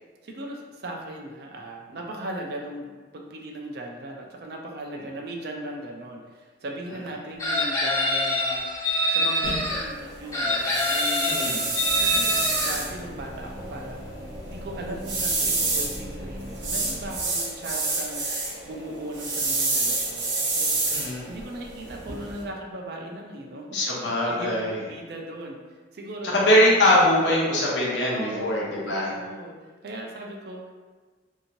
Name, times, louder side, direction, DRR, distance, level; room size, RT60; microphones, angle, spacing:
voice 1, 0.2-11.3 11.8-14.1 14.5-20.7 21.3-25.6 25.9-26.4 28.1-30.7, right 1 dB, 60° right, 0 dB, 0.4 m, -38 dB
Chicken rooster, 7.4-9.8 10.3-12.7, left 1 dB, 15° left, 0.4 m, -25 dB
sound 1, 9.4-22.4, right 3 dB, 85° right, 0.8 m, -29 dB
voice 2, 11.2-11.6 20.9-21.3 23.7-24.8 26.3-29.1, left 1 dB, 85° left, -5 dB, 0.8 m, -22 dB
sound 2, 11.8-17.1, equal, 35° left, 1.1 m, -40 dB
2.9 x 2.7 x 2.6 m, 1.4 s
head